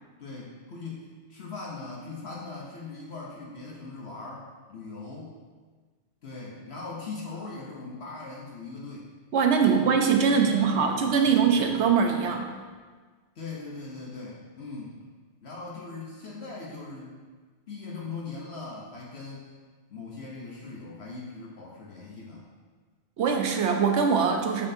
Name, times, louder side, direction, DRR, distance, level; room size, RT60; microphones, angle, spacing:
voice 1, 0.2-5.4 6.2-9.1 9.6-10.0 10.3-11.9 13.4-14.9 15.4-17.2 17.7-19.5 19.9-22.4, left 3 dB, 60° left, -3 dB, 1.1 m, -40 dB
voice 2, 9.3-12.5 23.2-24.7, right 6 dB, 70° right, 3 dB, 0.9 m, -22 dB
7.4 x 6.0 x 2.7 m, 1.4 s
omnidirectional pair, 1.2 m